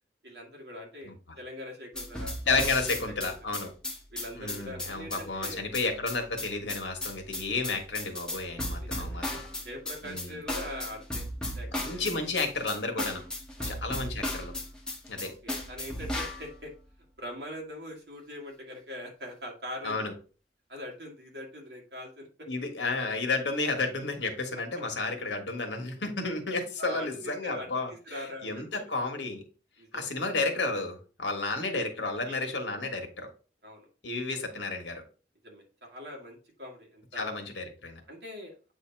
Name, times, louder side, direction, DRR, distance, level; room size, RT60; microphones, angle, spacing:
voice 1, 0.2-2.4 2.8-3.5 4.1-5.6 8.8-11.3 11.6-12.2 13.6-13.8 15.2-16.7 17.2-20.0 20.7-22.5 26.8-28.8 29.8-30.1 31.6-31.9 32.3-32.5 33.6-34.3 35.4-37.4 38.1-38.5, left 1 dB, 65° right, 0 dB, 1.9 m, -43 dB
sound 1, 2.0-16.5, left 1 dB, 5° left, 1.0 m, -35 dB
voice 2, 2.5-3.7 4.3-9.4 10.0-10.4 11.7-13.2 13.6-14.5 15.1-15.3 19.8-20.1 22.5-29.4 29.9-33.3 34.0-35.0 37.1-38.0, left 3 dB, 90° left, 3 dB, 1.4 m, -32 dB
8.0 x 2.8 x 4.4 m, 0.37 s
head